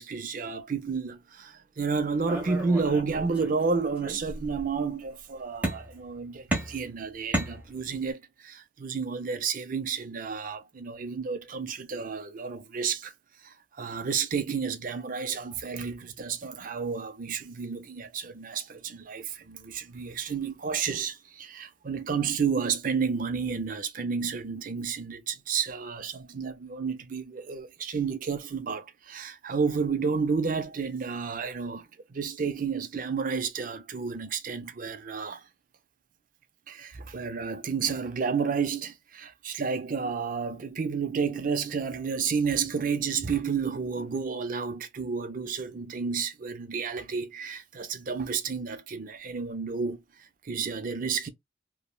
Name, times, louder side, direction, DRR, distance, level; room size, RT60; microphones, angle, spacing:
voice 1, 0.0-13.1 13.4-35.4 36.7-50.0 50.4-51.3, right 5 dB, 45° right, 0.5 m, -31 dB
sound 1, 2.3-3.6 4.0-4.7 5.6-6.1 6.5-8.1, right 1 dB, 10° right, 1.1 m, -33 dB
3.3 x 2.1 x 2.3 m
head